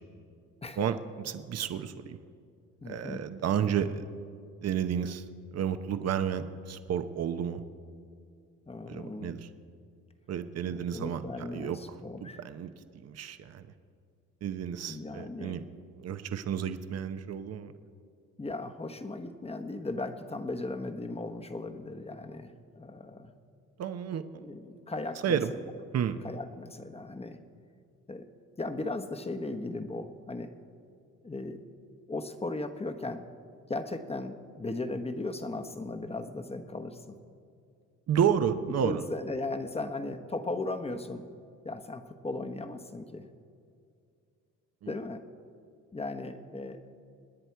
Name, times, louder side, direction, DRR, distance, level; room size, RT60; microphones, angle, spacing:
voice 1, 0.8-2.2 2.8-4.0 4.6-5.2 5.5-7.6 8.9-9.5 10.3-11.9 12.2-12.7 13.0-13.7 14.4-15.6 16.0-17.7 23.8-24.5 25.2-25.5 25.9-26.2 38.1-39.0 44.8-44.9, right 8 dB, 55° right, 10 dB, 0.9 m, -31 dB
voice 2, 2.8-3.2 8.7-9.3 10.7-12.4 14.9-15.6 18.4-23.3 24.4-25.6 26.2-27.4 28.1-28.3 28.6-30.5 31.2-31.6 32.1-33.3 33.7-37.2 38.8-41.2 41.6-43.3 44.9-45.3 45.9-47.0, left 2 dB, 20° left, 7 dB, 1.1 m, -37 dB
27.0 x 10.0 x 4.6 m, 2.4 s
cardioid pair, 90°, 30 cm